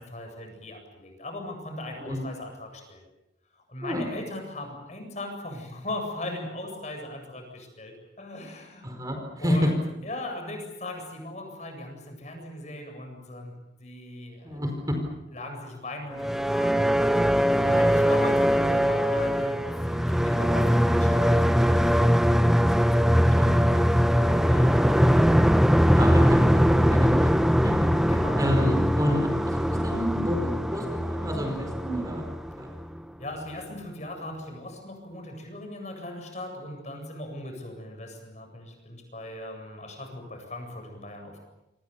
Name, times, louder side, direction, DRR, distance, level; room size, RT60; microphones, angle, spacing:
voice 1, 0.0-3.0 3.5-8.9 9.4-9.7 10.0-14.6 15.3-16.8 17.4-25.1 28.1-28.4 33.2-41.4, left 1 dB, 40° left, 3 dB, 7.9 m, -39 dB
voice 2, 8.8-9.7 14.4-15.0 17.4-17.9 23.4-23.9 24.3-24.4 25.9-27.9 28.4-32.2 32.5-32.7, equal, 20° right, 3 dB, 4.9 m, -30 dB
sound 1, 16.1-33.0, equal, ahead, 0.9 m, -21 dB
29.0 x 25.5 x 7.0 m, 0.91 s
head